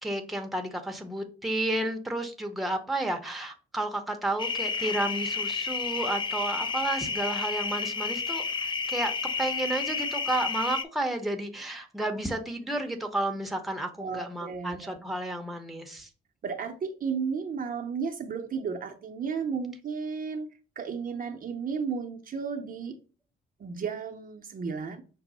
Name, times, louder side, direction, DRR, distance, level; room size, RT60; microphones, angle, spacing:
voice 1, 0.0-9.1 9.4-16.1, right 1 dB, ahead, 0.8 m, -32 dB
sound 1, 4.4-10.8, left 5 dB, 25° left, 0.3 m, -31 dB
voice 2, 14.0-15.0 16.4-20.5 20.8-23.0 23.6-25.0, right 5 dB, 45° right, 0.7 m, -33 dB
5.9 x 2.1 x 4.0 m
cardioid pair, 90°, 20 cm